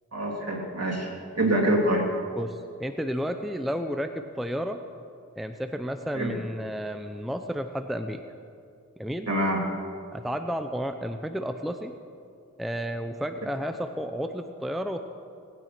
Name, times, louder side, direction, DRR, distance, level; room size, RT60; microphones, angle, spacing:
voice 1, 0.1-1.1 1.3-2.1 6.1-6.3 9.3-9.7, right 1 dB, 55° right, -2 dB, 3.1 m, -25 dB
voice 2, 2.4-4.8 5.4-8.2 9.0-9.3 10.1-11.9 12.6-15.0, equal, ahead, 7 dB, 0.7 m, -32 dB
19.5 x 9.2 x 6.0 m, 2.5 s
wide cardioid pair, 45°, 31 cm